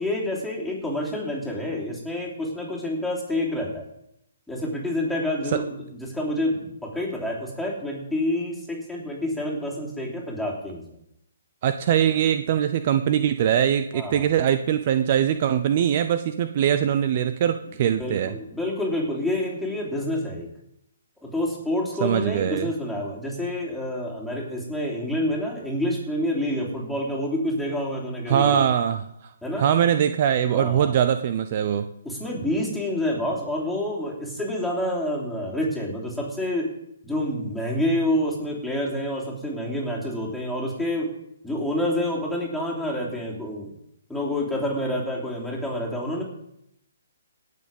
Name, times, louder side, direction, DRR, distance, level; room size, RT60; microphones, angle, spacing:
voice 1, 0.0-3.8 4.5-10.8 13.9-14.2 18.0-20.5 21.2-28.7 29.4-29.7 30.5-30.9 32.0-36.7 37.0-41.1 41.4-43.7 44.1-46.2, left 1 dB, ahead, -5 dB, 3.2 m, -28 dB
voice 2, 11.6-18.4 22.0-22.7 28.3-29.3 29.6-31.9, right 9 dB, 45° right, 10 dB, 0.6 m, -22 dB
18.0 x 6.7 x 5.4 m, 0.78 s
hypercardioid pair, 145°, 0 cm